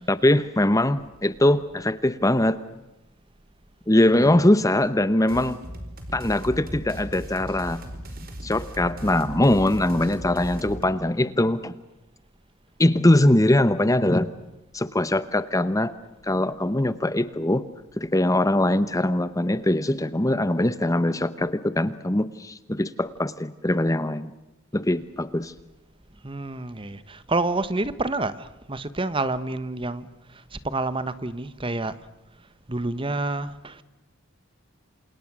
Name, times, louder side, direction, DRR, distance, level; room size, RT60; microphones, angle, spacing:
voice 1, 0.1-2.6 3.9-5.6 6.1-7.8 8.4-11.7 12.8-14.3 14.7-15.9 16.2-17.7 18.0-24.3 24.7-25.5, left 1 dB, 15° left, 0.9 m, -22 dB
voice 2, 4.0-4.5 26.2-32.0 32.7-33.8, right 2 dB, 25° right, 1.3 m, -29 dB
sound 1, 5.3-10.8, equal, 45° right, 4.7 m, -37 dB
28.5 x 28.0 x 6.3 m
head